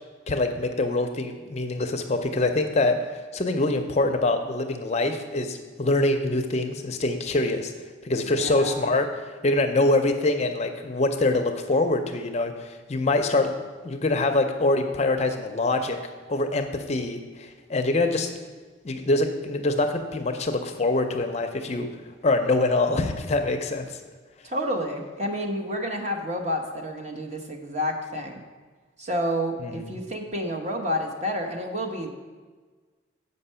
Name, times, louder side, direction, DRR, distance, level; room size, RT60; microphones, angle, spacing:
voice 1, 0.3-3.1 3.3-7.7 8.0-13.5 13.8-16.0 16.3-18.3 18.8-21.9 22.2-24.0 29.6-29.9, left 2 dB, 35° left, 6 dB, 0.5 m, -24 dB
voice 2, 8.4-8.9 24.4-28.4 29.0-32.1, equal, 35° right, 3 dB, 0.9 m, -29 dB
7.7 x 5.4 x 5.5 m, 1.4 s
head